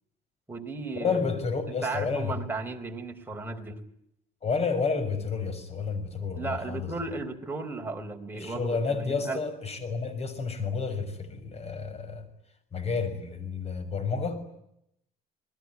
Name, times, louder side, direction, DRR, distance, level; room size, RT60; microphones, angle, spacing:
voice 1, 0.5-1.2 1.7-3.8 6.4-9.4, right 3 dB, 10° right, 3 dB, 4.5 m, -35 dB
voice 2, 1.0-2.3 4.4-7.0 8.3-12.2 12.7-14.4, left 5 dB, 40° left, 12 dB, 6.7 m, -30 dB
29.0 x 20.5 x 9.8 m, 0.77 s
cardioid pair, 110°, 17 cm